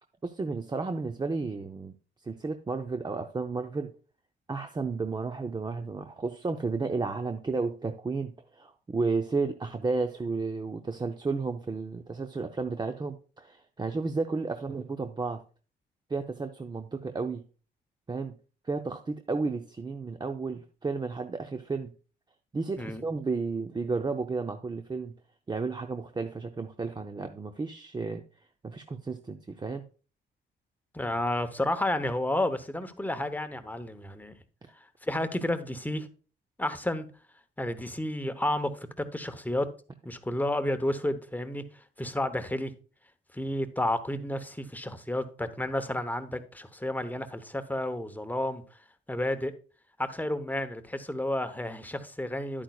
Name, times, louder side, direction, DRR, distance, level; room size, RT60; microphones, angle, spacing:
voice 1, 0.2-1.9 2.2-3.9 4.5-15.4 16.1-17.4 18.1-18.3 18.6-21.9 22.5-25.1 25.5-28.2 28.6-29.8, right 4 dB, 20° right, 0.6 m, -32 dB
voice 2, 30.9-34.3 35.0-36.1 36.6-37.1 37.6-39.7 40.0-41.6 42.0-42.7 43.3-48.6 49.1-49.5 50.0-52.6, left 1 dB, 10° left, 0.9 m, -31 dB
10.5 x 8.7 x 2.3 m
cardioid pair, 90°, 20 cm